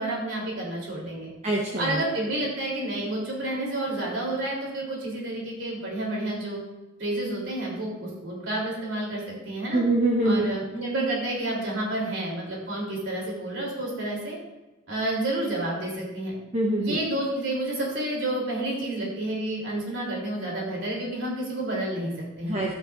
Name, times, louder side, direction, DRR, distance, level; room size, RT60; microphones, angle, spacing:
voice 1, 0.0-1.3 1.8-6.6 7.0-9.8 10.2-14.4 14.9-16.4 16.8-22.5, right 1 dB, 70° right, -3 dB, 3.2 m, -30 dB
voice 2, 1.4-2.0 9.7-10.4 16.5-17.0 22.4-22.7, right 1 dB, 30° right, -2 dB, 1.0 m, -24 dB
11.5 x 9.4 x 2.5 m, 1.1 s
head